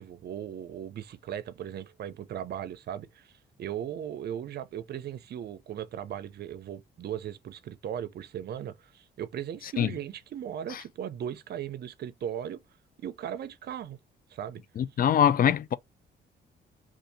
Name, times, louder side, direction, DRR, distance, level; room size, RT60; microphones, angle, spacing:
voice 1, 0.0-3.3 3.6-12.6 13.0-14.0 14.3-14.6, right 10 dB, 55° right, 0.5 m, -37 dB
voice 2, 14.8-15.7, left 9 dB, 45° left, 0.4 m, -23 dB
2.7 x 2.5 x 3.8 m
cardioid pair, 90°, 20 cm